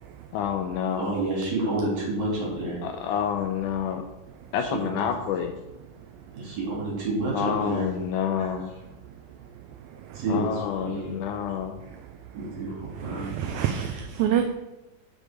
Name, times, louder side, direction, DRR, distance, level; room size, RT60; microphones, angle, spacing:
voice 1, 0.3-1.1 2.8-4.0 4.5-5.6 7.3-8.7 10.3-11.8, left 8 dB, 80° left, 6 dB, 1.8 m, -28 dB
voice 2, 1.0-2.8 4.6-5.1 6.3-7.9 8.4-8.5 10.1-11.1 12.3-13.3, right 2 dB, 55° right, -5 dB, 4.0 m, -29 dB
voice 3, 13.0-14.5, right 9 dB, 80° right, 7 dB, 1.7 m, -26 dB
6.5 x 6.1 x 5.1 m, 1.0 s
omnidirectional pair, 3.9 m